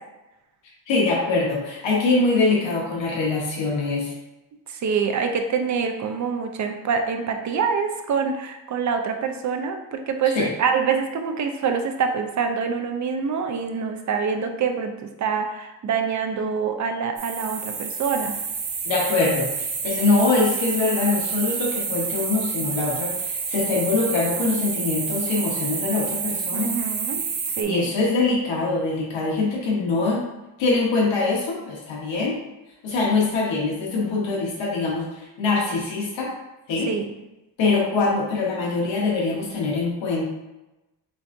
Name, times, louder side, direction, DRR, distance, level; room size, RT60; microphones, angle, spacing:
voice 1, 0.9-4.1 10.3-10.5 18.8-26.8 27.7-30.2 30.6-32.4 32.8-36.3 36.7-36.9 37.6-40.3, left 3 dB, 80° left, -3 dB, 1.1 m, -23 dB
voice 2, 4.8-18.3 26.5-27.2 27.6-27.9 36.9-37.1, right 6 dB, 45° right, 5 dB, 0.4 m, -25 dB
sound 1, 17.2-27.6, right 5 dB, 65° right, 0.9 m, -28 dB
7.0 x 2.5 x 2.5 m, 1.0 s
cardioid pair, 160°, 44 cm